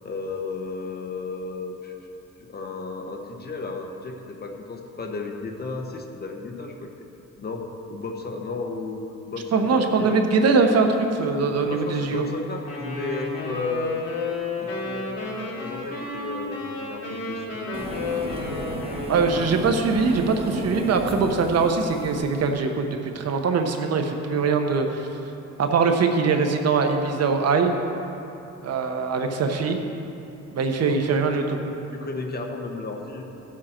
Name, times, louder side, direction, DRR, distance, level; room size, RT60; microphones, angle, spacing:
voice 1, 0.0-1.9 2.5-6.9 7.4-10.1 11.6-14.1 14.6-17.9 30.8-30.9 31.3-31.4 31.9-33.3, left 3 dB, 35° left, 2 dB, 1.2 m, -33 dB
voice 2, 9.5-12.3 19.1-25.1 25.6-27.7 28.6-29.8 30.5-31.6, right 4 dB, 60° right, 5 dB, 1.0 m, -22 dB
Wind instrument woodwind instrument, 12.7-19.6, left 3 dB, 60° left, 2.9 m, -32 dB
sound 1, 17.7-22.5, right 1 dB, 20° right, 1.1 m, -34 dB
16.0 x 7.5 x 4.4 m, 2.9 s
cardioid pair, 130°, 29 cm